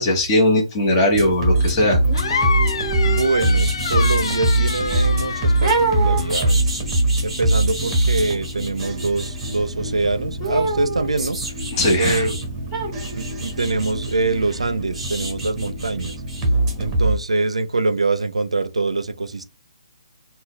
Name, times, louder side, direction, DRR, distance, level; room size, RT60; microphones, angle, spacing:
voice 1, 0.0-2.0 11.7-12.3, left 1 dB, 25° left, 1.1 m, -18 dB
sound 1, 1.1-17.1, right 1 dB, 20° right, 1.1 m, -23 dB
sound 2, 2.0-5.1 5.6-9.6 10.4-12.4 12.7-16.5 16.8-16.9, right 3 dB, 5° right, 1.3 m, -29 dB
sound 3, 2.1-6.5, left 5 dB, 55° left, 0.4 m, -27 dB
voice 2, 3.0-6.7 7.2-11.4 12.0-12.4 13.1-16.2 16.8-19.4, right 3 dB, 90° right, 0.4 m, -24 dB
3.8 x 2.3 x 3.2 m
figure-of-eight pair, 145°, 3 cm